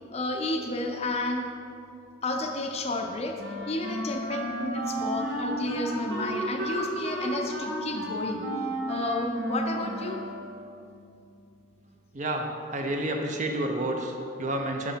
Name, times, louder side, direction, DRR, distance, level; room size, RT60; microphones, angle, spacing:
voice 1, 0.1-1.5 2.2-8.4 8.9-10.2, left 2 dB, 30° left, 3 dB, 0.5 m, -31 dB
Wind instrument woodwind instrument, 3.4-10.8, right 1 dB, 60° right, 1.2 m, -32 dB
voice 2, 12.1-12.5 12.7-14.9, right 1 dB, 40° right, 3 dB, 0.6 m, -29 dB
6.3 x 4.9 x 5.1 m, 2.6 s
head